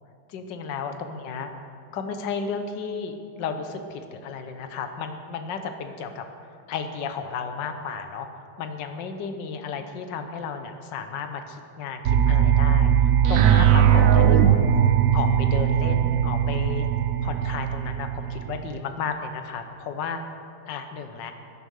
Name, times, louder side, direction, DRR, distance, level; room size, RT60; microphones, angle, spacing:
voice 1, 0.3-1.5 1.9-6.3 6.7-14.8 15.1-16.9 17.2-20.2 20.7-21.3, left 5 dB, 70° left, 7 dB, 1.6 m, -33 dB
sound 1, 12.0-18.8, right 9 dB, 60° right, 0.9 m, -19 dB
16.5 x 10.0 x 6.4 m, 2.5 s
omnidirectional pair, 2.1 m